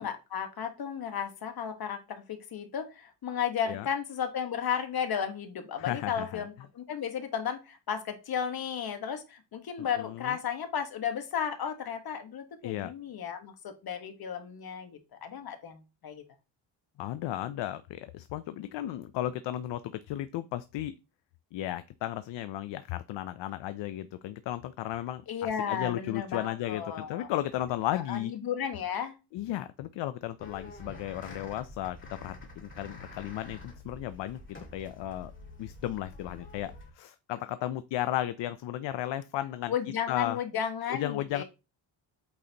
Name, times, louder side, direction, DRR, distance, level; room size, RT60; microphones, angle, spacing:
voice 1, 0.0-16.2 25.3-27.3 27.9-29.2 39.7-41.4, left 8 dB, 55° left, 1.4 m, -34 dB
voice 2, 5.8-6.4 9.8-10.4 12.6-12.9 17.0-20.9 21.5-25.2 25.7-28.3 29.3-35.3 35.6-39.7 40.1-40.4 40.9-41.4, left 13 dB, 70° left, 0.5 m, -34 dB
sound 1, 30.4-36.9, left 2 dB, 25° left, 2.0 m, -47 dB
8.5 x 3.9 x 2.9 m
cardioid pair, 115°, 45 cm